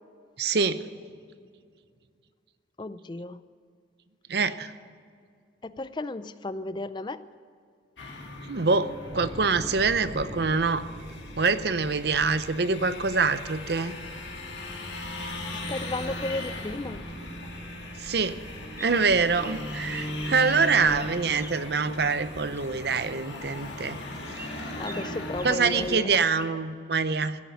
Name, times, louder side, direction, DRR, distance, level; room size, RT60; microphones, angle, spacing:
voice 1, 0.4-0.9 4.3-4.7 8.4-10.8 11.4-14.0 18.0-18.4 18.8-24.0 24.3-24.4 25.4-27.4, right 4 dB, 60° right, 13 dB, 0.7 m, -25 dB
voice 2, 2.8-3.4 5.6-7.2 15.5-17.0 23.3-23.4 24.8-26.2, left 2 dB, 25° left, 14 dB, 0.4 m, -34 dB
sound 1, 8.0-26.0, left 1 dB, 75° left, 2.1 m, -38 dB
sound 2, 9.0-23.8, equal, 45° right, 3.6 m, -45 dB
sound 3, 18.4-20.7 20.9-22.8 23.3-23.5 23.8-24.0 24.3-26.5, right 2 dB, 10° right, 0.8 m, -46 dB
16.0 x 8.3 x 9.3 m, 2.2 s
head